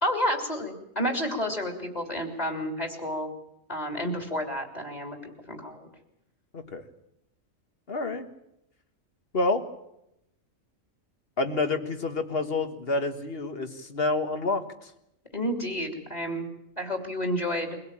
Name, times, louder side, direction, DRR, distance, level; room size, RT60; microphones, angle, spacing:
voice 1, 0.0-3.3 3.7-5.9 15.3-16.5 16.8-17.8, equal, 30° left, 4 dB, 3.3 m, -30 dB
voice 2, 7.9-8.3 9.3-9.6 11.4-14.9, left 3 dB, 50° left, 7 dB, 1.7 m, -28 dB
23.0 x 17.0 x 8.8 m, 0.83 s
omnidirectional pair, 1.4 m